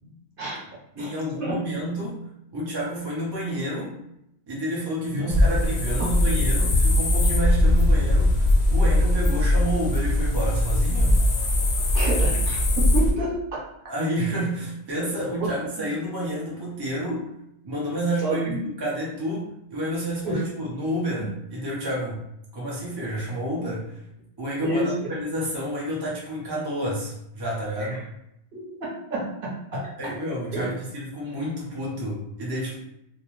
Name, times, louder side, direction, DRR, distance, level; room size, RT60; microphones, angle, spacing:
voice 1, 0.0-0.7 1.0-1.1 1.4-1.6 5.1-5.4 6.0-6.1 11.9-13.6 15.4-15.5 15.8-15.9 18.2-18.6 20.2-20.4 21.2-21.3 24.6-24.9 27.8-28.0 28.5-30.1 30.5-30.7, right 2 dB, 50° right, -6 dB, 0.9 m, -30 dB
voice 2, 1.0-2.2 2.5-3.9 4.5-11.2 13.9-17.3 17.6-18.5 18.8-22.2 22.5-24.0 24.4-28.0 29.7-32.8, equal, 30° right, -5 dB, 0.5 m, -29 dB
sound 1, 5.3-13.1, left 1 dB, 65° left, 0.4 m, -20 dB
2.4 x 2.1 x 3.0 m, 0.79 s
omnidirectional pair, 1.3 m